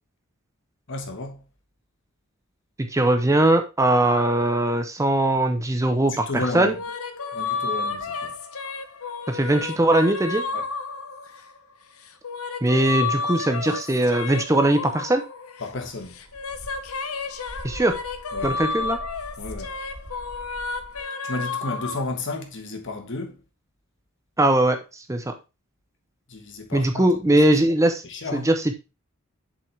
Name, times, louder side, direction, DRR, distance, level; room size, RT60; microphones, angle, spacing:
voice 1, 0.9-1.4 6.1-6.8 7.3-8.3 10.5-10.6 15.6-16.2 18.3-18.6 19.4-19.7 21.2-23.4 26.3-27.1 28.0-28.5, left 2 dB, 60° left, 1.4 m, -32 dB
voice 2, 2.9-6.7 9.3-10.4 12.6-15.2 17.6-18.0 18.4-19.0 24.4-25.3 26.7-28.0 28.3-28.7, right 1 dB, 15° right, 0.7 m, -20 dB
sound 1, 6.6-11.6 12.0-15.8 16.1-22.0, left 4 dB, 80° left, 0.8 m, -31 dB
sound 2, 15.9-21.0, equal, 65° right, 2.5 m, -42 dB
7.1 x 5.5 x 3.3 m
head